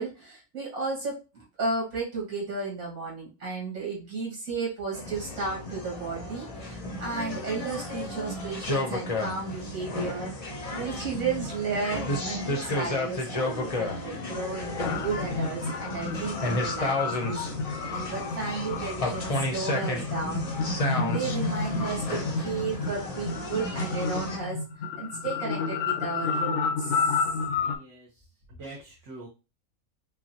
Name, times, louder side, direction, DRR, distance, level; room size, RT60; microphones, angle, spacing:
voice 1, 0.0-17.4 17.9-20.4 20.9-24.6 25.0-27.2, right 4 dB, 85° right, -4 dB, 2.2 m, -33 dB
sound 1, 4.9-24.4, left 2 dB, 35° left, 0.6 m, -32 dB
sound 2, 14.8-27.8, left 4 dB, 65° left, 0.8 m, -31 dB
voice 2, 27.6-29.3, right 2 dB, 60° right, -5 dB, 1.4 m, -45 dB
5.4 x 2.5 x 2.8 m, 0.30 s
omnidirectional pair, 1.4 m